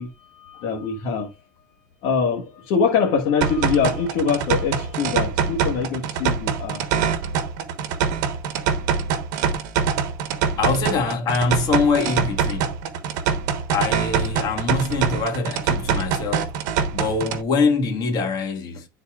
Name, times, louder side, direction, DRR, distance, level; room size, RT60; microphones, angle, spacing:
voice 1, 0.0-1.3 2.0-6.8, left 6 dB, 55° left, 1.3 m, -24 dB
sound 1, 3.4-17.4, right 7 dB, 70° right, 1.1 m, -24 dB
voice 2, 10.6-12.8 13.7-16.5 16.9-18.9, left 4 dB, 40° left, 1.6 m, -23 dB
11.5 x 4.1 x 2.4 m
supercardioid pair, 120°, 10 cm